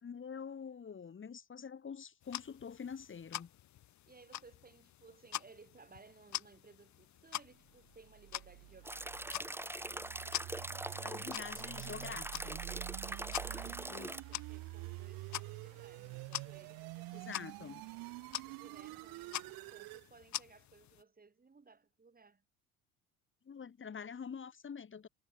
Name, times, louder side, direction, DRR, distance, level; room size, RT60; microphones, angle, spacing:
voice 1, 0.0-3.5 10.9-12.6 13.9-14.1 17.3-17.8 23.4-25.1, left 6 dB, 30° left, 2.7 m, -46 dB
sound 1, 2.2-21.0, left 13 dB, 45° left, 1.3 m, -47 dB
voice 2, 4.1-9.6 13.0-17.7 18.0-18.1 18.4-22.4, right 4 dB, 25° right, 5.5 m, -60 dB
sound 2, 7.9-20.1, right 25 dB, 65° right, 1.1 m, -48 dB
sound 3, 8.8-14.2, right 1 dB, 5° right, 2.3 m, -42 dB
hypercardioid pair, 65°, 38 cm